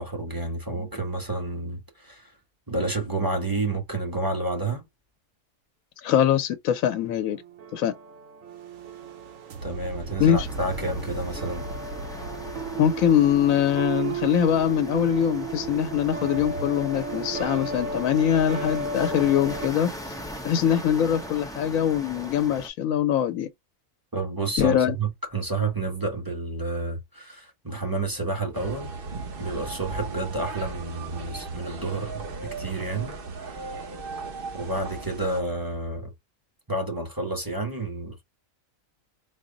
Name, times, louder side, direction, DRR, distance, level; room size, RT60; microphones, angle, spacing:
voice 1, 0.0-2.3 2.7-4.8 9.6-11.6 24.1-28.9 29.4-33.6 34.6-36.1 36.7-38.2, right 2 dB, 20° right, 0.9 m, -30 dB
voice 2, 6.0-7.4 7.7-7.9 10.2-10.5 12.8-19.9 20.4-23.5 24.6-24.9, left 9 dB, 90° left, 1.0 m, -23 dB
sound 1, 6.8-19.7, right 3 dB, 75° right, 1.1 m, -34 dB
sound 2, 10.3-22.7, equal, 5° left, 0.6 m, -40 dB
sound 3, 28.5-35.4, right 3 dB, 50° right, 0.9 m, -36 dB
3.9 x 2.0 x 3.8 m
omnidirectional pair, 1.4 m